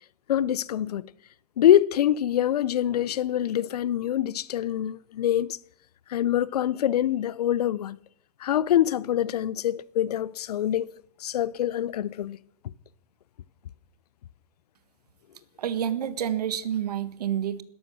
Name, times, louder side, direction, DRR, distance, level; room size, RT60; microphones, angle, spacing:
voice 1, 0.3-1.1 1.6-5.6 6.1-8.0 8.4-10.9 11.2-12.4, left 11 dB, 75° left, 0.7 m, -25 dB
voice 2, 15.6-17.6, right 9 dB, 75° right, 1.7 m, -28 dB
16.5 x 13.5 x 6.4 m
hypercardioid pair, 120°, 20 cm